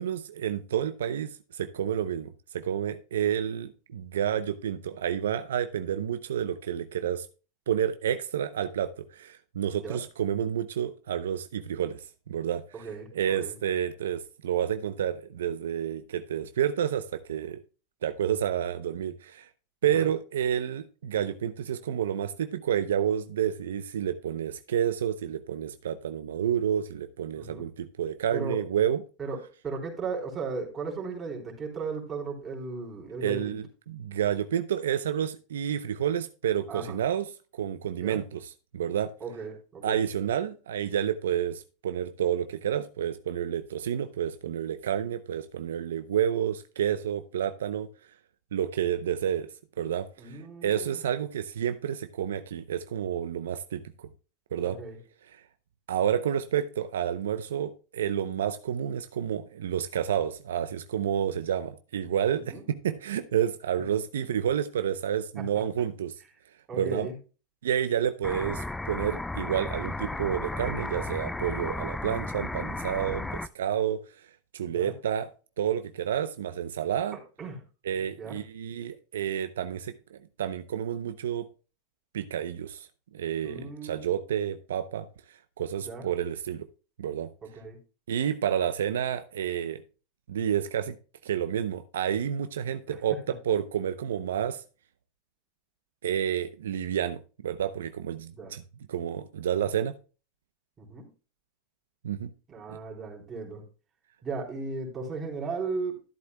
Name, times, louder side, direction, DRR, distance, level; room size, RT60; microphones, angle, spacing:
voice 1, 0.0-7.3 7.7-17.6 18.0-19.5 19.8-29.0 33.2-37.3 37.5-39.1 39.8-47.9 48.5-49.5 49.8-53.8 54.5-54.8 55.9-66.1 66.8-67.1 67.6-74.0 74.5-75.3 75.6-77.2 77.8-81.5 82.1-82.9 83.1-85.1 85.6-86.7 87.0-87.3 88.1-89.8 90.3-91.0 91.2-94.6 96.0-98.6 98.9-99.9 102.0-102.3 102.7-102.8, right 9 dB, 90° right, 0.6 m, -30 dB
voice 2, 12.7-13.5 19.8-20.1 27.3-27.7 28.3-28.6 29.2-33.6 36.7-37.0 38.0-38.2 39.2-40.0 50.2-51.0 54.6-55.0 62.5-62.6 63.8-63.9 65.4-65.5 66.7-67.1 73.0-73.3 74.7-74.9 77.1-77.6 78.2-78.4 83.4-84.1 85.8-86.1 87.4-87.8 92.9-93.2 98.3-98.6 100.8-101.1 102.5-103.6 104.2-106.0, right 4 dB, 25° right, 3.6 m, -36 dB
sound 1, 68.2-73.5, left 2 dB, 5° left, 0.4 m, -34 dB
13.0 x 8.1 x 2.2 m
supercardioid pair, 120°, 0 cm